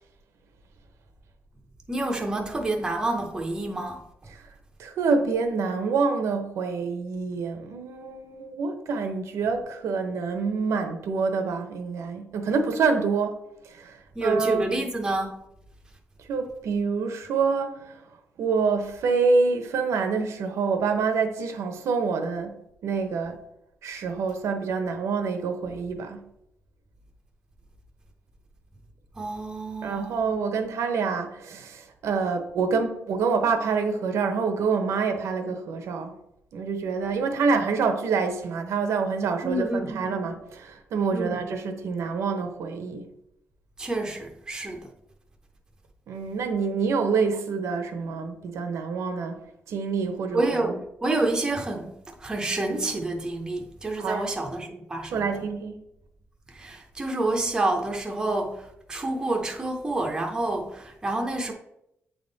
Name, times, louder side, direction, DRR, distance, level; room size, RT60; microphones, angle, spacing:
voice 1, 1.9-4.0 14.2-15.4 29.2-30.2 39.4-40.2 41.1-41.4 43.8-44.9 50.3-51.9 52.2-55.4 56.6-58.6 58.9-61.5, right 2 dB, 15° right, 0.7 m, -28 dB
voice 2, 4.8-13.4 13.7-14.6 16.3-18.0 18.4-22.5 22.8-23.4 23.8-26.2 29.8-36.1 36.5-43.0 46.1-49.4 49.7-50.8 54.0-54.3 55.1-55.8, right 5 dB, 75° right, 0.8 m, -27 dB
8.6 x 3.6 x 4.0 m
wide cardioid pair, 180°, 5 cm